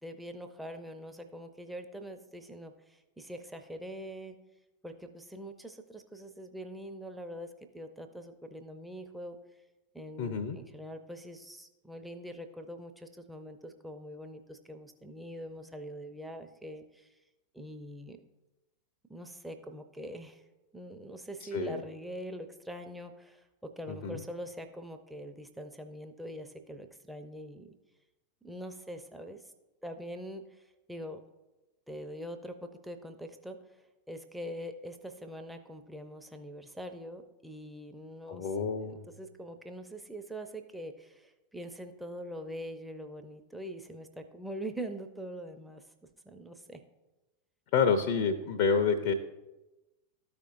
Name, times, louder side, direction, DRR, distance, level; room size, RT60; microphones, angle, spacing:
voice 1, 0.0-4.4 4.8-9.4 9.9-17.2 17.5-18.2 19.1-20.4 20.7-27.7 28.4-29.5 29.8-31.2 31.9-33.8 34.1-38.5 38.8-45.9 46.2-46.8, equal, 5° right, 5 dB, 0.7 m, -43 dB
voice 2, 10.2-10.6 21.5-21.8 24.0-24.2 38.3-39.1 47.7-49.1, left 5 dB, 45° left, 7 dB, 0.6 m, -28 dB
13.5 x 5.1 x 2.5 m, 1.0 s
figure-of-eight pair, 90°, 0 cm